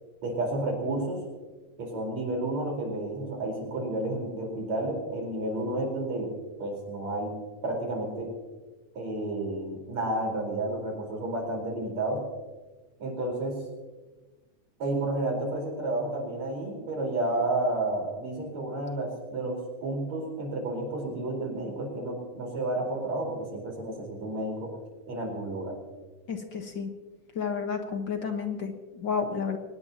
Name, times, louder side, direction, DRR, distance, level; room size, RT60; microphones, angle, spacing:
voice 1, 0.2-1.2 1.8-6.3 6.6-7.3 7.6-8.3 9.0-12.2 13.0-13.6 14.8-24.7 25.1-25.8, right 2 dB, 60° right, 1 dB, 5.7 m, -31 dB
voice 2, 26.3-26.9 27.3-29.6, left 6 dB, 50° left, 4 dB, 1.6 m, -31 dB
23.5 x 20.0 x 2.9 m, 1.2 s
omnidirectional pair, 3.5 m